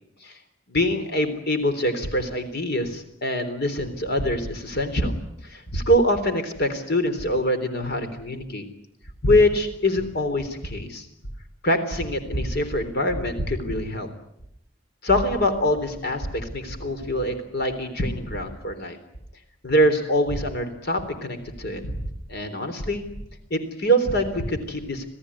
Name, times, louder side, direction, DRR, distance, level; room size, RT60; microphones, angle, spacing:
voice 1, 0.7-5.1 5.4-8.6 9.2-11.1 11.6-14.1 15.0-19.0 19.6-21.9 22.3-23.0 23.5-25.0, equal, 55° left, 8 dB, 3.6 m, -24 dB
28.0 x 18.0 x 9.9 m, 0.79 s
head